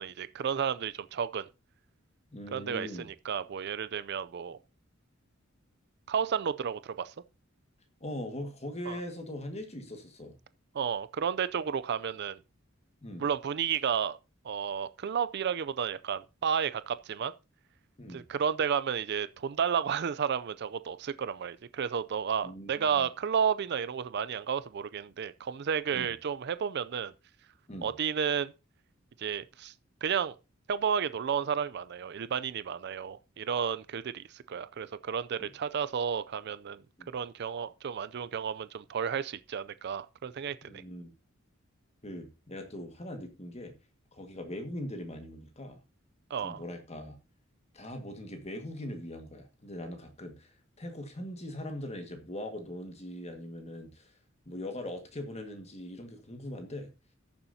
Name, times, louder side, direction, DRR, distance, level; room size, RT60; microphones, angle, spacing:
voice 1, 0.0-1.5 2.5-4.6 6.1-7.1 8.9-9.0 10.7-12.4 13.2-14.2 14.4-17.3 18.1-27.1 27.8-28.5 29.2-29.7 30.0-30.4 30.7-36.8 37.1-40.6 46.3-46.6, right 7 dB, 55° right, 0.4 m, -32 dB
voice 2, 2.3-3.1 8.0-10.3 13.0-13.3 18.0-18.2 22.4-23.1 25.9-26.1 27.7-27.9 35.4-35.5 37.0-37.1 40.7-41.1 42.0-43.7 44.1-45.8 46.4-47.2 47.7-54.1 54.4-56.9, left 1 dB, 30° left, 1.7 m, -41 dB
18.0 x 7.0 x 2.7 m
head